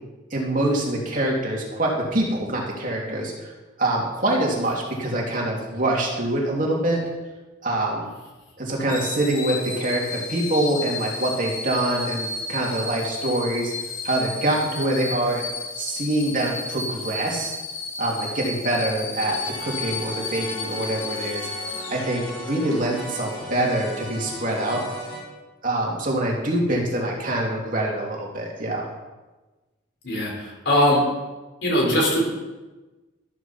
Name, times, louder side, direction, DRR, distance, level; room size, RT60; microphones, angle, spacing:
voice 1, 0.3-3.5 3.8-7.0 7.6-8.1 8.6-13.7 14.0-15.5 15.8-17.5 18.0-21.5 21.9-24.8 25.6-28.9, right 1 dB, 40° right, -2 dB, 2.9 m, -25 dB
sound 1, 8.9-22.5 23.0-23.2, left 3 dB, 85° left, 2.6 m, -33 dB
sound 2, 19.1-25.2, equal, 25° left, 5.0 m, -37 dB
voice 2, 30.0-31.0 31.6-32.3, equal, 55° left, -2 dB, 5.3 m, -20 dB
14.0 x 13.0 x 4.5 m, 1.2 s
head